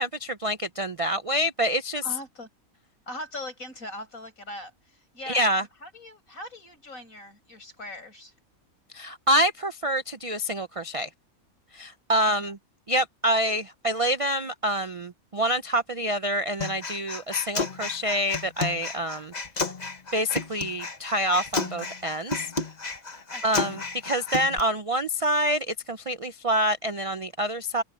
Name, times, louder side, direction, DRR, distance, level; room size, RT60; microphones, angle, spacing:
voice 1, 0.0-2.0 5.3-5.6 8.9-11.1 11.7-12.6 12.9-19.3 20.1-22.4 23.4-27.8, equal, 45° right, 0.4 m, -26 dB
voice 2, 2.0-2.5 3.1-8.3 12.3-12.5 23.3-23.7, left 1 dB, 65° left, 8.4 m, -41 dB
Human voice, 16.6-24.6, left 3 dB, 30° left, 1.4 m, -32 dB
omnidirectional pair, 1.5 m